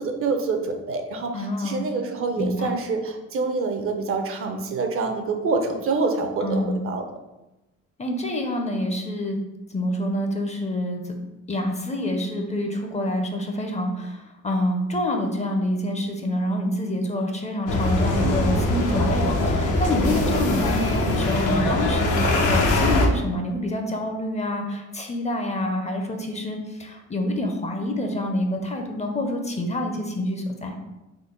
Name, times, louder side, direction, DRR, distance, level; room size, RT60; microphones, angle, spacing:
voice 1, 0.0-7.0 18.2-18.7, right 4 dB, 45° right, 5 dB, 0.5 m, -26 dB
voice 2, 1.3-1.8 2.4-2.7 6.4-6.8 8.0-9.4 9.7-11.1 11.5-30.8, left 1 dB, 25° left, 3 dB, 0.5 m, -27 dB
sound 1, 17.7-23.1, left 2 dB, 85° left, 0.6 m, -22 dB
3.8 x 2.1 x 3.7 m, 1.0 s
cardioid pair, 90°, 30 cm